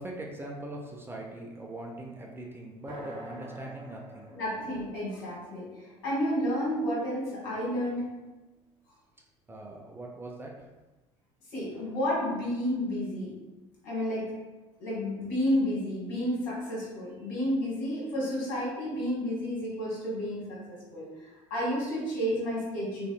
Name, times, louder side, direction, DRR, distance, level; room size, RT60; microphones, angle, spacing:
voice 1, 0.0-4.3 9.5-10.7 17.2-17.3, right 1 dB, 15° right, -1 dB, 0.4 m, -41 dB
sound 1, 2.9-6.8, right 1 dB, 35° right, 1.2 m, -47 dB
voice 2, 4.3-8.0 11.5-13.3 13.8-14.2 14.8-20.6 20.9-23.1, equal, 65° left, -6 dB, 1.3 m, -31 dB
2.5 x 2.5 x 2.2 m, 1.1 s
figure-of-eight pair, 65°, 15 cm